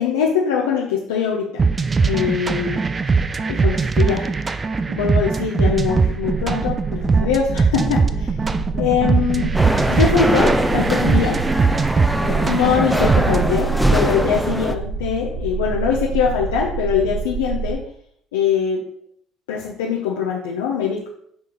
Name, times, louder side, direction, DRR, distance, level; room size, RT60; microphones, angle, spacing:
voice 1, 0.0-1.7 2.0-2.8 3.5-4.3 4.9-8.3 8.8-9.6 9.9-11.4 12.2-17.8 18.3-18.8 19.5-21.1, left 7 dB, 85° left, -2 dB, 0.9 m, -22 dB
sound 1, 1.6-13.6, right 4 dB, 30° right, 0.6 m, -21 dB
sound 2, 5.7-17.7, right 5 dB, 65° right, 2.5 m, -28 dB
sound 3, 9.5-14.7, equal, ahead, 0.8 m, -22 dB
7.1 x 4.7 x 4.0 m, 0.66 s
hypercardioid pair, 60°, 0 cm